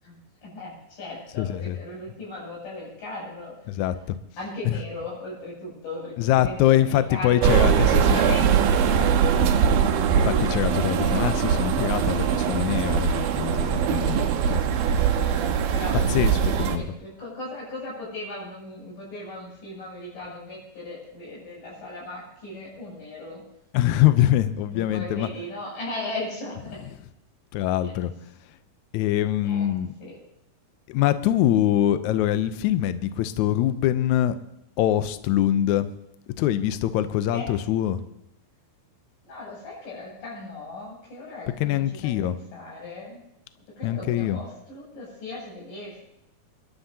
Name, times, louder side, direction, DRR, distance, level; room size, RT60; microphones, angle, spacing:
voice 1, 0.0-3.5 4.4-7.6 7.9-9.1 15.7-23.4 24.7-26.8 27.8-28.0 29.4-29.7 30.0-30.1 37.3-37.5 39.2-43.2 43.8-46.0, left 2 dB, 65° left, -5 dB, 9.0 m, -37 dB
voice 2, 1.4-1.8 3.8-4.0 4.7-4.8 6.2-8.2 9.4-9.5 10.2-14.2 14.5-14.6 14.9-15.0 15.9-16.8 23.7-25.3 27.5-28.1 28.9-29.9 30.9-34.4 34.8-35.9 36.4-38.0 41.6-42.4 43.8-44.4, left 12 dB, 90° left, 11 dB, 1.6 m, -23 dB
sound 1, 7.4-16.8, right 7 dB, 80° right, 2.6 m, -22 dB
28.5 x 11.5 x 2.8 m, 0.80 s
omnidirectional pair, 4.2 m